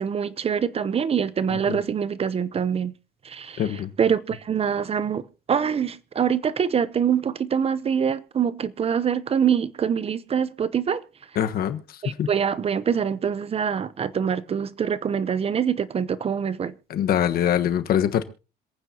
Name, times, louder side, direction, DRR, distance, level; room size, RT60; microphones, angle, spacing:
voice 1, 0.0-2.9 3.2-11.0 12.0-16.7, right 7 dB, 35° right, 0.8 m, -25 dB
voice 2, 3.6-3.9 11.4-11.8 12.2-12.3 16.9-18.2, left 10 dB, 60° left, 1.4 m, -23 dB
26.5 x 9.2 x 2.9 m
cardioid pair, 110°, 17 cm